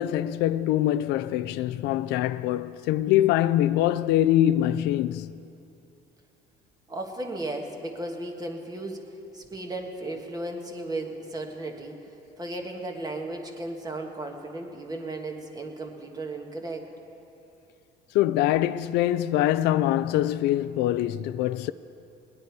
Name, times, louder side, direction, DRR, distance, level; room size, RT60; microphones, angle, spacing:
voice 1, 0.0-5.3 18.1-21.7, left 13 dB, 85° left, 0.4 m, -24 dB
voice 2, 6.9-9.0 9.3-11.9 12.4-16.9, right 2 dB, 20° right, 1.6 m, -35 dB
19.5 x 9.7 x 4.7 m
cardioid pair, 110°, 17 cm